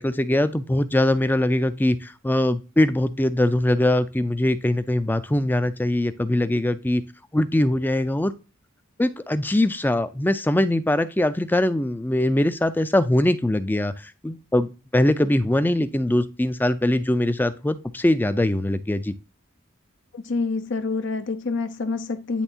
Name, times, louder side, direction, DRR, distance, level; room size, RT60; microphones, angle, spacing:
voice 1, 0.0-7.0 7.3-8.3 9.0-19.1, left 1 dB, 10° left, 0.4 m, -22 dB
voice 2, 20.1-22.4, left 4 dB, 65° left, 0.6 m, -27 dB
9.9 x 3.5 x 2.8 m
head